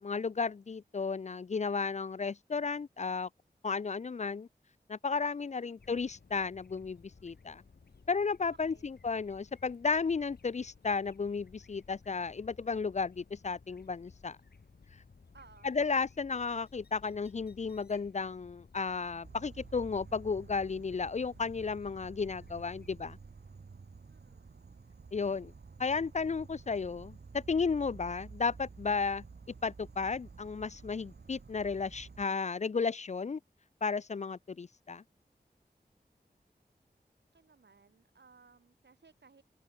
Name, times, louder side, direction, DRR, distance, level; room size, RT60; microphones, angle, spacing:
voice 1, 0.0-3.3 3.6-4.5 4.9-7.6 8.1-14.4 15.6-23.2 25.1-25.5 25.8-29.2 29.6-33.4 33.8-35.0, left 5 dB, 45° left, 0.4 m, -33 dB
voice 2, 5.4-5.8 8.5-8.9 15.3-15.8 24.1-24.5 37.3-39.4, right 4 dB, 85° right, 4.2 m, -61 dB
sound 1, 5.8-23.0, left 4 dB, 70° left, 1.4 m, -58 dB
Insect, 19.2-32.2, right 4 dB, 70° right, 1.5 m, -51 dB
wide cardioid pair, 50°, 17 cm